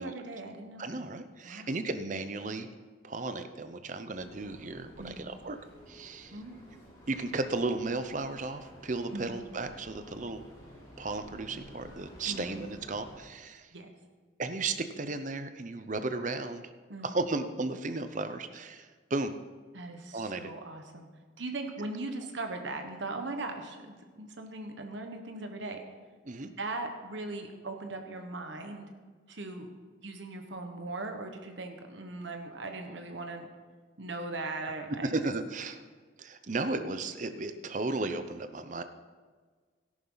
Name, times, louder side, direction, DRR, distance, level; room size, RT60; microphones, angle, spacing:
voice 1, 0.0-1.1 1.4-1.7 5.0-5.3 6.3-6.6 9.1-9.4 12.2-12.6 13.7-13.9 16.9-17.1 19.7-21.1 21.4-25.8 26.4-28.9 29.3-29.7 30.0-33.5 34.0-35.1, right 2 dB, 65° right, 4 dB, 1.3 m, -39 dB
voice 2, 0.8-2.7 3.0-5.6 5.9-6.4 7.1-10.5 11.0-13.7 14.4-16.7 17.0-19.3 20.1-20.5 26.2-26.5 35.0-35.8 36.2-38.8, right 3 dB, 40° right, 10 dB, 0.7 m, -34 dB
sound 1, 4.1-13.2, equal, 20° left, 3.7 m, -52 dB
13.5 x 11.0 x 4.0 m, 1.5 s
head